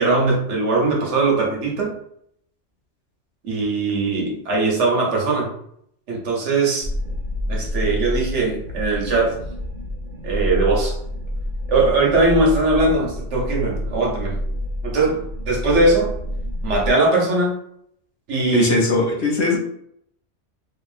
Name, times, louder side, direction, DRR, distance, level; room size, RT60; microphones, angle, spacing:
voice 1, 0.0-1.9 3.4-5.5 6.1-6.9 7.5-9.4 10.2-10.9 11.7-14.4 14.8-16.1 16.6-17.6 18.3-18.7, right 3 dB, 75° right, -2 dB, 1.1 m, -20 dB
sound 1, 6.8-16.9, left 1 dB, 55° right, 0.8 m, -28 dB
voice 2, 18.5-19.6, left 2 dB, 65° left, -1 dB, 0.9 m, -19 dB
2.8 x 2.6 x 2.4 m, 0.70 s
omnidirectional pair, 1.2 m